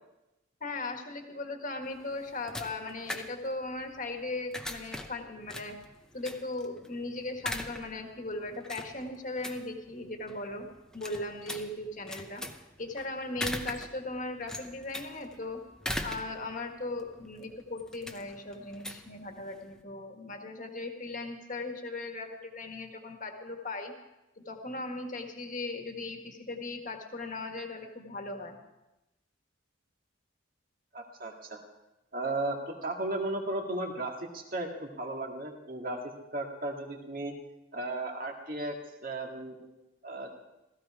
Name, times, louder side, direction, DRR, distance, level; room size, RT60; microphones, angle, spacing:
voice 1, 0.6-5.8 6.1-10.7 10.9-12.4 12.8-15.6 16.0-23.9 24.4-28.6, left 2 dB, 40° left, 4 dB, 1.7 m, -38 dB
sound 1, 1.8-19.8, left 1 dB, 5° left, 0.7 m, -42 dB
voice 2, 30.9-31.6 32.1-37.3 37.7-38.8 39.0-39.7 40.0-40.3, right 2 dB, 45° right, 2 dB, 2.0 m, -35 dB
16.5 x 15.0 x 4.9 m, 0.98 s
head